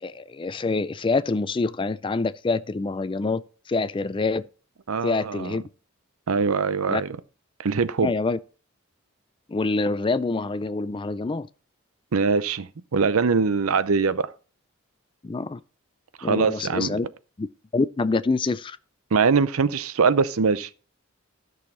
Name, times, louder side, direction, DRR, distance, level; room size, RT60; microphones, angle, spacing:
voice 1, 0.0-3.4 3.7-4.5 5.0-5.6 6.9-7.0 8.0-8.4 9.5-11.5 15.2-15.6 16.2-17.1 17.4-17.5 17.7-18.8, left 3 dB, 25° left, 0.4 m, -26 dB
voice 2, 4.9-5.6 6.3-7.2 7.6-8.1 12.1-14.3 16.2-17.0 19.1-20.7, right 5 dB, 90° right, 0.6 m, -22 dB
13.0 x 6.5 x 4.2 m
head